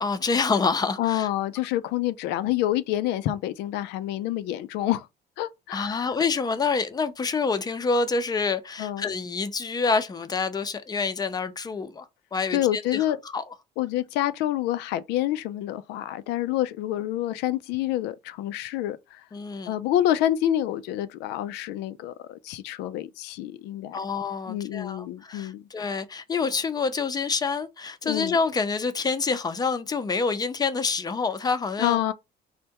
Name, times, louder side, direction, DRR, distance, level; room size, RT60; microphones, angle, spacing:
voice 1, 0.0-1.3 5.7-12.1 12.3-13.4 19.3-19.7 23.9-32.0, left 4 dB, 25° left, 0.4 m, -27 dB
voice 2, 1.0-5.1 5.4-6.1 8.8-9.1 12.5-13.2 13.8-19.2 19.7-24.0 24.5-25.7 28.0-28.4 31.8-32.1, left 13 dB, 85° left, 0.4 m, -27 dB
3.3 x 2.2 x 2.8 m
cardioid pair, 110°, 17 cm